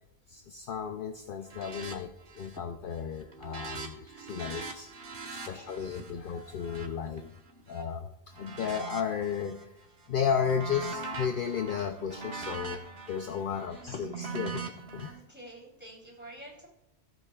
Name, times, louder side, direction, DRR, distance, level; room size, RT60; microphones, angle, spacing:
voice 1, 0.3-2.1 2.4-4.9 5.3-7.3 7.7-8.1 8.4-9.7 10.1-14.7 14.9-15.2, left 7 dB, 60° left, 6 dB, 0.7 m, -33 dB
sound 1, 1.5-2.0 2.2-2.7 3.0-7.8 8.3-9.6 10.0-15.1, right 4 dB, 60° right, 1.5 m, -42 dB
voice 2, 3.5-5.9 13.5-14.1 15.0-16.7, right 1 dB, 10° right, -4 dB, 3.6 m, -52 dB
15.5 x 8.4 x 2.3 m, 0.88 s
omnidirectional pair, 1.1 m